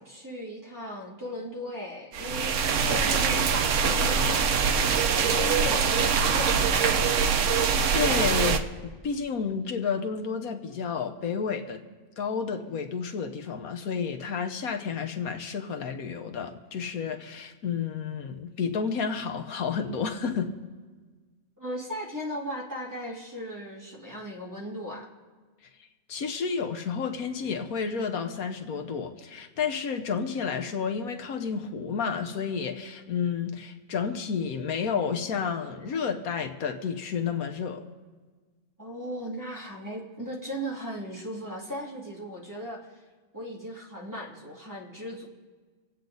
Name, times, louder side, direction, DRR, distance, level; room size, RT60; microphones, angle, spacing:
voice 1, 0.0-4.2 4.8-7.0 21.6-25.1 38.8-42.9 43.3-45.3, equal, 15° right, -4 dB, 2.5 m, -37 dB
sound 1, 2.1-8.6, right 6 dB, 65° right, 1.0 m, -23 dB
voice 2, 7.9-11.8 12.2-20.5 26.1-37.8, left 6 dB, 80° left, 5 dB, 1.4 m, -31 dB
26.5 x 8.8 x 3.9 m, 1.4 s
omnidirectional pair, 1.5 m